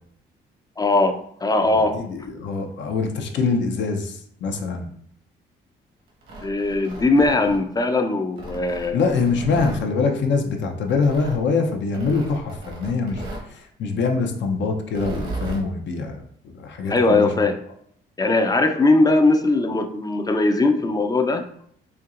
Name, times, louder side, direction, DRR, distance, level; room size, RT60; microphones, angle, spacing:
voice 1, 0.8-2.0 6.4-9.0 16.9-17.6 18.2-21.5, left 2 dB, 20° left, 7 dB, 0.4 m, -20 dB
voice 2, 1.7-4.9 8.9-16.2 16.5-17.3, left 4 dB, 65° left, 3 dB, 0.7 m, -24 dB
Tearing, 6.1-7.9 8.4-9.8 10.9-11.4 11.9-13.5 14.8-15.6, right 2 dB, 80° right, 1.2 m, -35 dB
4.5 x 2.7 x 2.5 m, 0.65 s
cardioid pair, 90°, 20 cm